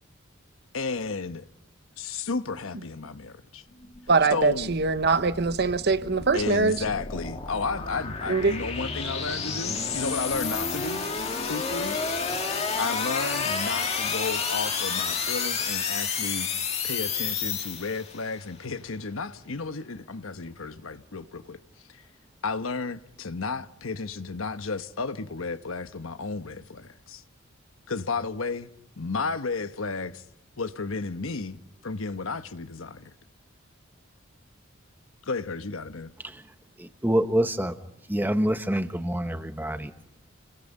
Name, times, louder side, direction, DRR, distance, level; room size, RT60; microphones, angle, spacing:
voice 1, 0.7-1.4 2.0-3.6 4.3-4.7 6.3-11.0 11.4-12.0 12.8-16.5 16.8-21.6 21.9-22.0 22.4-27.2 27.9-28.7 29.0-30.2 30.6-33.1 35.3-36.1, left 4 dB, 90° left, 1.1 m, -33 dB
sound 1, 3.7-18.3, left 5 dB, 30° left, 2.2 m, -31 dB
voice 2, 4.1-6.8 8.3-8.5, right 4 dB, 55° right, 0.9 m, -23 dB
voice 3, 36.8-37.8 38.1-40.1, equal, 10° right, 1.1 m, -27 dB
29.5 x 22.5 x 5.5 m
head